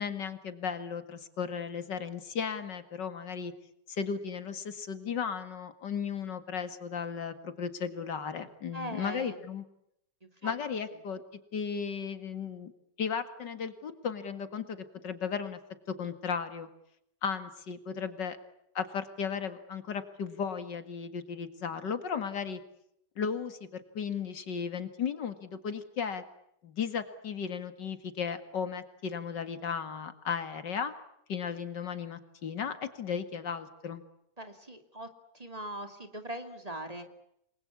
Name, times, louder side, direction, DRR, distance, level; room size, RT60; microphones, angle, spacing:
voice 1, 0.0-3.5 3.9-9.6 10.4-11.2 11.5-12.7 13.0-15.6 15.9-16.7 17.2-18.4 18.7-22.6 23.2-26.2 26.6-30.9 31.3-34.0, left 6 dB, 90° left, 10 dB, 2.6 m, -35 dB
voice 2, 8.7-9.4 10.2-10.5 34.4-35.1 35.3-37.1, right 1 dB, 20° right, 7 dB, 2.6 m, -40 dB
28.5 x 22.0 x 8.4 m, 0.78 s
omnidirectional pair, 1.8 m